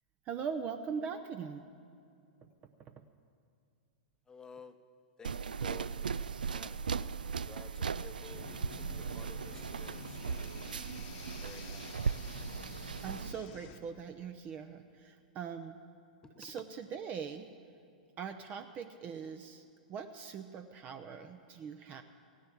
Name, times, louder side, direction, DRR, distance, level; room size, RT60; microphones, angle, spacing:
voice 1, 0.2-1.6 2.4-2.5 2.8-3.1 13.0-15.8 16.4-17.5 18.2-19.6 19.9-22.0, right 6 dB, 35° right, 8 dB, 0.7 m, -41 dB
voice 2, 4.3-4.8 5.2-6.2 6.5-6.8 7.2-10.5 11.4-12.1 16.2-16.5, left 5 dB, 15° left, 9 dB, 0.8 m, -54 dB
sound 1, 5.2-13.3, right 6 dB, 80° right, 0.4 m, -38 dB
sound 2, 8.3-13.8, left 5 dB, 50° left, 1.0 m, -50 dB
15.5 x 10.0 x 7.3 m, 2.4 s
hypercardioid pair, 105°, 5 cm